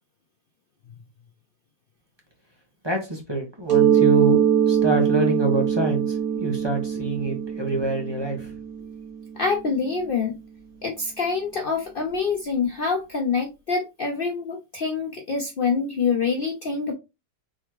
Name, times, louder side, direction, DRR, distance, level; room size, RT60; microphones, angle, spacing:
voice 1, 2.8-6.1 6.4-8.5, right 2 dB, 20° right, 0.9 m, -26 dB
Mallet percussion, 3.7-9.2, right 8 dB, 55° right, 2.0 m, -22 dB
voice 2, 9.4-10.4 10.8-16.9, left 5 dB, 80° left, 0.4 m, -26 dB
4.4 x 3.6 x 3.0 m
omnidirectional pair, 1.8 m